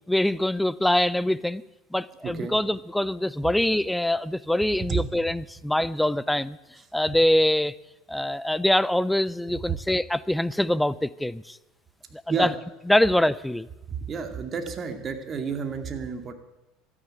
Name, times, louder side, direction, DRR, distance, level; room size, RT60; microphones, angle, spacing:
voice 1, 0.1-1.6 1.9-6.6 6.9-7.7 8.1-11.6 12.1-12.5 12.9-13.7, left 1 dB, 5° left, 19 dB, 0.5 m, -24 dB
voice 2, 2.2-2.5 4.9-5.0 12.3-12.5 13.9-16.3, right 6 dB, 35° right, 7 dB, 2.3 m, -30 dB
13.0 x 9.9 x 9.0 m, 0.96 s
hypercardioid pair, 85°, 0 cm